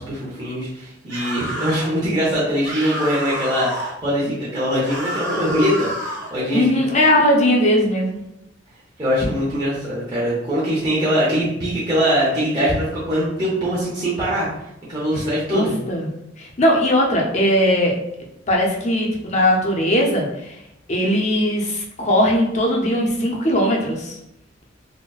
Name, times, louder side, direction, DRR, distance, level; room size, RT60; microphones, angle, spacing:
voice 1, 0.0-6.7 9.0-14.5 14.9-15.7, equal, 20° right, -9 dB, 0.7 m, -22 dB
sound 1, 1.1-1.9 2.6-3.9 4.8-6.3, equal, 75° right, 1.0 m, -28 dB
voice 2, 6.5-8.2 15.5-17.9 18.5-20.6 20.9-24.2, equal, 35° left, -1 dB, 0.5 m, -19 dB
3.8 x 2.1 x 2.3 m, 0.83 s
head